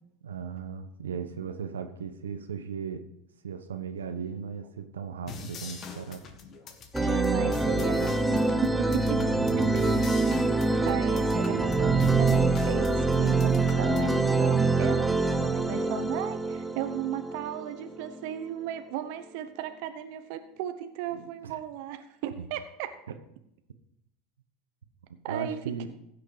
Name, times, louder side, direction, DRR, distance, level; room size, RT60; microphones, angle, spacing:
voice 1, 0.2-3.1 3.4-6.3 9.0-10.0 21.1-21.6 23.1-23.2 25.3-25.9, right 6 dB, 90° right, 7 dB, 1.0 m, -37 dB
sound 1, 5.3-14.2, left 5 dB, 40° left, 1.8 m, -44 dB
sound 2, 6.9-18.3, right 3 dB, 5° right, 0.9 m, -25 dB
voice 2, 7.0-9.3 9.6-9.7 10.8-23.0 25.2-25.6, right 12 dB, 65° right, 9 dB, 0.9 m, -35 dB
16.0 x 6.5 x 4.9 m, 0.78 s
hypercardioid pair, 90°, 0 cm